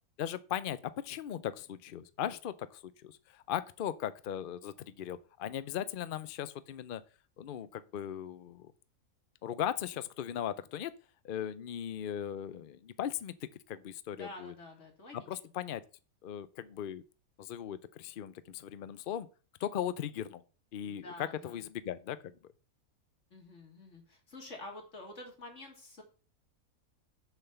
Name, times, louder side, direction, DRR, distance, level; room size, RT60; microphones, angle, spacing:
voice 1, 0.2-7.0 7.4-8.7 9.4-10.9 11.2-14.5 15.1-15.8 16.2-17.0 17.4-19.3 19.6-20.4 20.7-22.3, left 10 dB, 70° left, 0.5 m, -38 dB
voice 2, 14.1-15.2 20.8-21.6 23.3-26.0, left 2 dB, 50° left, 2.9 m, -48 dB
7.2 x 5.7 x 6.9 m
omnidirectional pair, 1.6 m